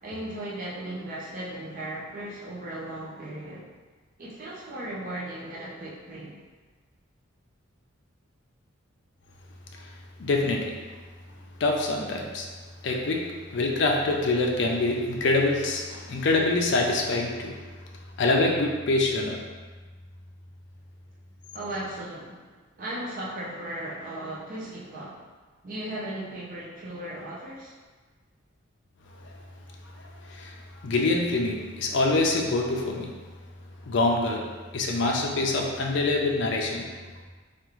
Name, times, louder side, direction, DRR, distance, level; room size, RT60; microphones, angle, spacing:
voice 1, 0.0-3.7 4.2-6.3 21.5-22.5 22.8-25.3 25.6-27.7, right 1 dB, 40° right, -6 dB, 0.5 m, -36 dB
voice 2, 10.2-10.7 11.6-12.5 12.8-13.2 13.5-17.6 18.2-19.4 30.3-30.6 30.8-33.1 33.8-34.5 34.7-36.9, left 2 dB, 60° left, 0 dB, 0.4 m, -25 dB
3.5 x 2.4 x 3.0 m, 1.4 s
head